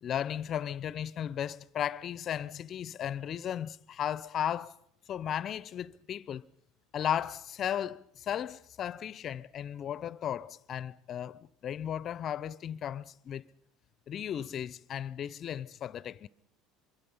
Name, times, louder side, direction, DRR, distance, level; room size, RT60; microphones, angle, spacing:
voice 1, 0.0-4.8 5.1-6.4 6.9-13.5 14.1-16.3, left 9 dB, 45° left, 0.8 m, -35 dB
25.0 x 23.5 x 5.6 m
hypercardioid pair, 80°, 0 cm